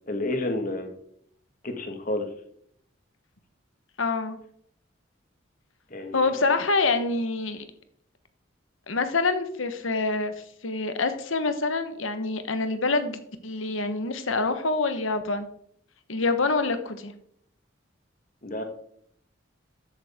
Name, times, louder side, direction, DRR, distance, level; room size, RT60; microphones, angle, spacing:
voice 1, 0.1-0.9 1.6-2.3 5.9-6.3 18.4-18.6, left 1 dB, 40° left, 5 dB, 1.6 m, -30 dB
voice 2, 4.0-4.4 6.1-7.7 8.9-10.3 10.6-15.5 16.1-17.1, left 3 dB, 80° left, 9 dB, 1.2 m, -26 dB
13.0 x 8.4 x 3.6 m, 0.67 s
head